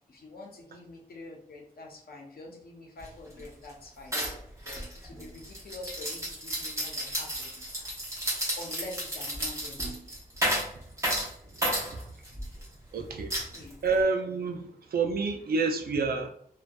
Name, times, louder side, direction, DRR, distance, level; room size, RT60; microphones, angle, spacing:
voice 1, 0.1-4.2 4.7-8.0 8.6-10.0 13.5-13.8, left 2 dB, 85° left, -1 dB, 0.7 m, -46 dB
sound 1, 3.0-3.1 3.4-3.7 4.1-12.7 13.3-14.0, right 1 dB, 20° right, 0.9 m, -32 dB
voice 2, 12.9-13.3 13.8-16.3, right 4 dB, 80° right, 4 dB, 0.4 m, -28 dB
2.5 x 2.2 x 2.3 m, 0.66 s
wide cardioid pair, 95°, 15 cm